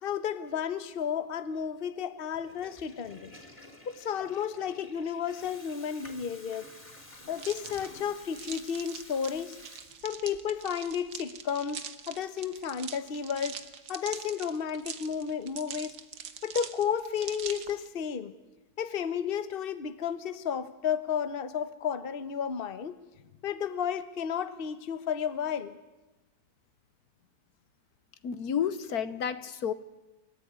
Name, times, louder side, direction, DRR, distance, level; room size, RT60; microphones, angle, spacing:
voice 1, 0.0-3.3 3.9-6.7 7.3-9.6 10.0-13.6 13.9-15.9 16.4-18.3 18.8-23.0 23.4-25.8, left 7 dB, 40° left, 1.2 m, -32 dB
Water tap faucet / Toilet flush, 2.3-10.4, left 1 dB, 20° left, 3.8 m, -51 dB
sound 1, 7.3-17.9, right 7 dB, 80° right, 1.9 m, -43 dB
voice 2, 28.2-29.7, left 8 dB, 70° left, 1.5 m, -31 dB
27.5 x 14.5 x 9.5 m
omnidirectional pair, 1.7 m